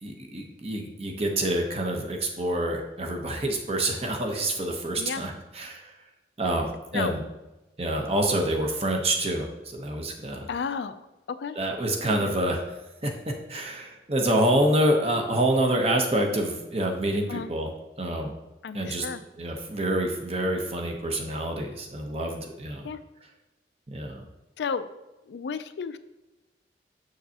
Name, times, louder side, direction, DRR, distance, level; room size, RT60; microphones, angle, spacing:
voice 1, 0.0-5.9 6.4-7.2 7.8-10.5 11.6-12.6 13.0-13.1 13.5-17.7 18.0-18.3 18.7-19.0 19.4-22.9 23.9-24.2, right 1 dB, 35° right, 3 dB, 0.8 m, -27 dB
voice 2, 10.5-11.0 11.3-11.6 12.0-12.3 17.3-17.5 18.6-19.2 22.8-23.0 24.6-24.9 25.3-26.0, left 5 dB, 80° left, 12 dB, 0.4 m, -32 dB
6.7 x 6.3 x 2.8 m, 1.1 s
head